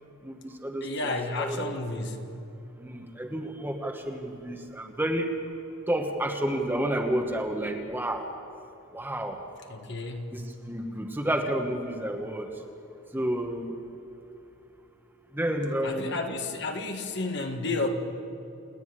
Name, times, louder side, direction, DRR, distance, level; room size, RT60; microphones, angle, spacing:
voice 1, 0.2-2.0 2.8-5.3 5.9-8.3 8.9-9.4 10.3-12.5 13.1-13.8 15.3-16.1, right 1 dB, 10° right, 3 dB, 1.2 m, -30 dB
voice 2, 0.8-2.2 9.7-10.3 15.8-17.9, left 3 dB, 55° left, 4 dB, 1.7 m, -31 dB
28.5 x 9.5 x 9.6 m, 2.7 s
head